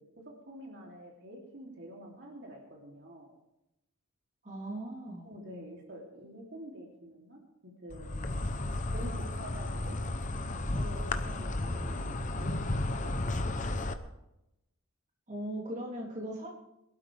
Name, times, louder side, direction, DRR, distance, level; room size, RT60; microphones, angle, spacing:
voice 1, 0.2-3.3 5.2-8.5 8.9-10.0 10.5-13.4 13.7-13.9, equal, 55° right, -2 dB, 3.1 m, -47 dB
voice 2, 4.4-5.3 15.3-16.5, right 1 dB, 35° right, -3 dB, 3.6 m, -38 dB
Insect, 7.9-13.9, left 2 dB, 35° left, 0.8 m, -33 dB
23.0 x 12.5 x 3.5 m, 0.90 s
head